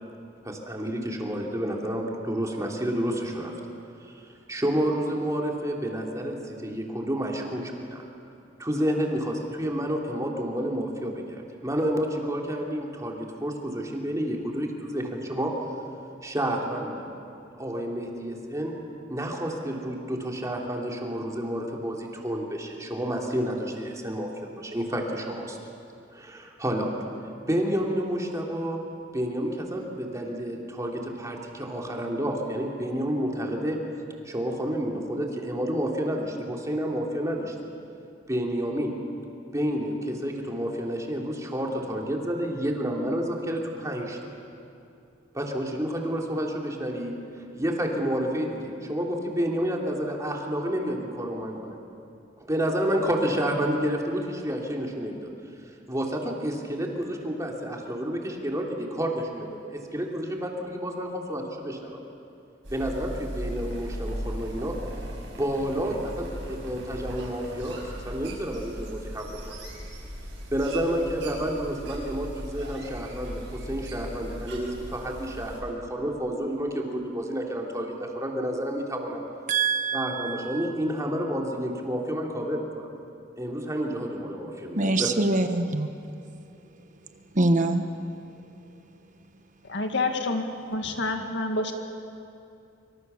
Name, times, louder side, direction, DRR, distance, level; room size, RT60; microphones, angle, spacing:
voice 1, 0.4-3.5 4.0-8.0 8.6-15.5 16.2-17.1 17.6-18.7 19.1-24.3 24.6-25.6 26.1-26.9 27.5-28.8 29.1-33.8 34.2-37.5 38.3-38.9 39.5-44.2 45.3-47.2 47.6-51.8 52.4-55.2 55.9-62.0 62.7-64.7 65.4-69.4 70.5-79.2 79.9-82.9 83.4-85.1, equal, 15° right, 0 dB, 3.0 m, -30 dB
sound 1, 62.6-75.6, equal, 75° right, 6.6 m, -38 dB
voice 2, 79.5-80.4 84.7-85.9 87.3-87.8, right 2 dB, 40° right, 7 dB, 1.2 m, -24 dB
voice 3, 89.7-90.5 90.7-91.7, left 2 dB, 65° left, 4 dB, 2.2 m, -27 dB
25.0 x 25.0 x 7.1 m, 2.6 s
head